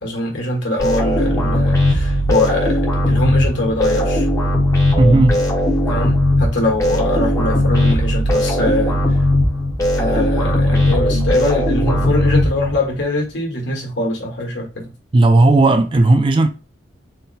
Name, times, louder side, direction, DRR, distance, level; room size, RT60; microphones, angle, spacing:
voice 1, 0.0-4.3 5.9-9.0 10.0-14.9, left 2 dB, 65° left, 1.4 m, -22 dB
sound 1, 0.8-13.0, left 1 dB, 15° left, 1.0 m, -17 dB
voice 2, 5.0-5.4 15.1-16.5, right 2 dB, 25° right, 0.4 m, -13 dB
4.0 x 2.1 x 4.0 m
head